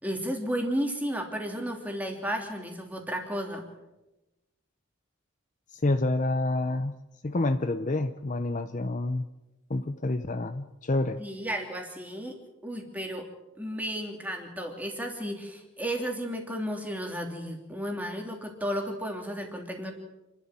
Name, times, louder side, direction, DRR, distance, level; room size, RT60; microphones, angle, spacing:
voice 1, 0.0-3.6 11.2-12.4 12.6-13.3 13.6-19.9, equal, 5° right, 2 dB, 3.1 m, -33 dB
voice 2, 5.7-6.9 7.2-9.3 9.7-11.2, left 2 dB, 35° left, 10 dB, 0.6 m, -28 dB
29.0 x 12.0 x 7.5 m, 1.0 s
head